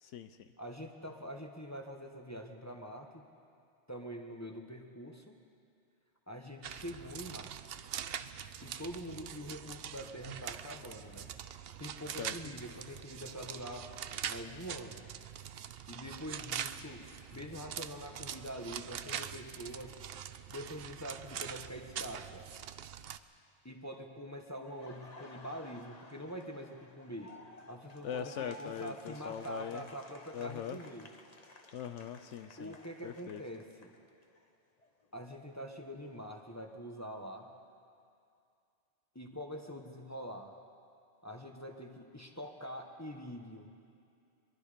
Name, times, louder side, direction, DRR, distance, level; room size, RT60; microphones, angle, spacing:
voice 1, 0.0-0.5 12.2-12.3 28.0-29.8 30.3-30.8 31.7-32.7 33.0-33.4, left 9 dB, 85° left, 9 dB, 1.0 m, -41 dB
voice 2, 0.6-3.2 3.9-5.4 6.3-7.9 8.6-11.3 11.8-13.9 14.3-15.0 15.9-20.0 20.5-22.5 23.6-27.4 27.7-31.1 32.6-33.9 35.1-37.5 39.1-40.6 41.2-43.7, equal, 15° left, 3 dB, 1.3 m, -45 dB
sound 1, 6.6-23.2, right 9 dB, 60° right, 0.8 m, -43 dB
Laughter, 24.6-34.5 34.8-36.8, left 2 dB, 35° left, 1.3 m, -55 dB
23.0 x 22.5 x 5.2 m, 2.4 s
omnidirectional pair, 1.2 m